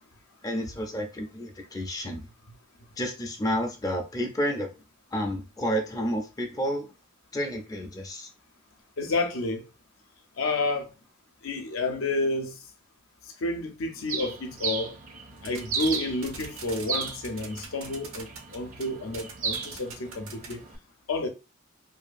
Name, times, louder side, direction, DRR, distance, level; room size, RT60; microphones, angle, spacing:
voice 1, 0.4-2.2 3.0-4.7 5.1-6.9 7.3-8.3, equal, 15° left, 0.4 m, -30 dB
voice 2, 9.0-9.7 10.4-10.9 11.4-12.5 13.4-14.9 15.4-20.6 21.1-21.3, left 2 dB, 70° left, 0.5 m, -30 dB
Bird, 14.1-20.8, right 5 dB, 40° right, 0.5 m, -36 dB
sound 1, 15.4-16.0 16.2-18.6 18.8-18.9 19.1-20.5, right 6 dB, 80° right, 0.8 m, -40 dB
2.6 x 2.3 x 2.5 m
head